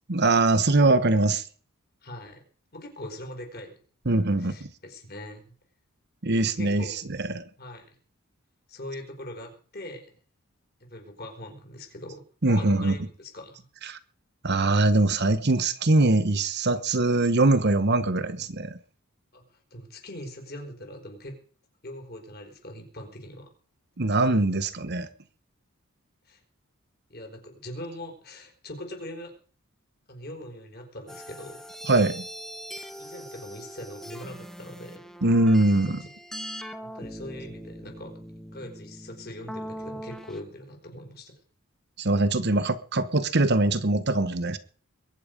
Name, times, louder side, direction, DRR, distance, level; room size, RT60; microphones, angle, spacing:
voice 1, 0.1-1.4 4.1-4.7 6.2-6.8 7.2-7.4 12.4-13.0 13.9-14.0 14.4-18.8 24.0-25.1 31.9-32.2 35.2-36.0 42.0-44.6, right 2 dB, 50° right, 1.1 m, -22 dB
voice 2, 2.0-2.4 2.7-3.7 4.4-5.5 6.4-6.9 7.6-7.9 8.7-10.1 10.8-13.7 19.3-21.4 21.8-23.5 26.3-26.4 27.1-29.3 30.1-31.6 33.0-35.1 36.8-38.2 38.5-41.3, left 1 dB, 45° left, 4.5 m, -41 dB
sound 1, 31.1-40.4, equal, ahead, 1.1 m, -41 dB
22.0 x 9.3 x 5.2 m
head